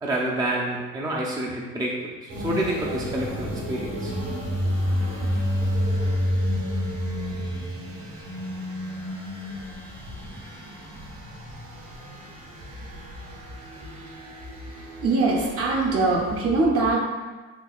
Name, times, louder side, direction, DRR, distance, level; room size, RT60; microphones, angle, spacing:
voice 1, 0.0-4.1, right 1 dB, 10° right, -3 dB, 0.4 m, -28 dB
sound 1, 2.3-16.4, equal, 75° right, 1.3 m, -30 dB
voice 2, 14.7-17.0, right 3 dB, 45° right, -2 dB, 0.7 m, -22 dB
3.7 x 2.8 x 2.3 m, 1.3 s
supercardioid pair, 80°, 31 cm